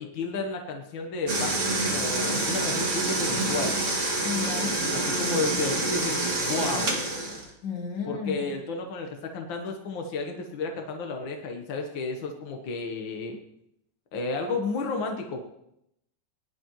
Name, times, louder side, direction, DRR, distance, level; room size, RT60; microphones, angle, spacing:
voice 1, 0.0-3.7 4.9-6.9 8.1-13.4 14.1-15.4, left 3 dB, 70° left, 3 dB, 1.1 m, -32 dB
sound 1, 1.3-7.5, right 2 dB, 25° right, 2.0 m, -27 dB
voice 2, 4.2-4.8 7.6-8.5, left 6 dB, 40° left, 1 dB, 2.0 m, -32 dB
22.0 x 11.0 x 3.1 m, 0.79 s
omnidirectional pair, 3.7 m